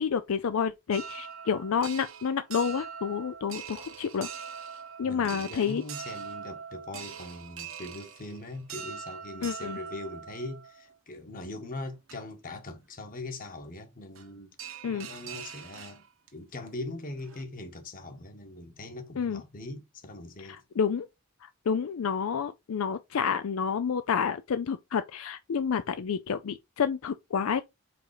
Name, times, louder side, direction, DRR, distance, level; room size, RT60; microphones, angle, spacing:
voice 1, 0.0-4.3 5.0-5.8 9.4-9.8 14.8-15.1 19.2-19.4 20.8-21.1 21.7-27.6, left 6 dB, 80° left, 0.4 m, -29 dB
sound 1, 0.9-11.0 11.6-11.7 12.1-12.2 14.2-14.3 14.6-16.3 16.7-16.8 17.1-17.4, right 7 dB, 70° right, 1.2 m, -42 dB
voice 2, 5.0-14.5 14.8-16.0 16.3-20.6, left 2 dB, 40° left, 1.4 m, -41 dB
5.1 x 3.9 x 4.8 m
head